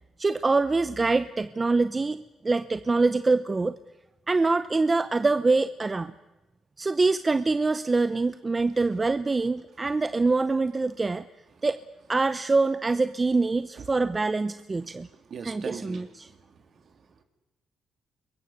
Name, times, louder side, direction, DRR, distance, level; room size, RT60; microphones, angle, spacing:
voice 1, 0.2-3.7 4.3-6.1 6.8-11.2 11.6-11.8 12.1-15.1 15.4-16.3, right 3 dB, 25° right, 12 dB, 0.8 m, -25 dB
voice 2, 14.8-17.2, right 6 dB, 55° right, 7 dB, 3.2 m, -43 dB
26.5 x 22.5 x 6.6 m, 1.1 s
cardioid pair, 90°, 0 cm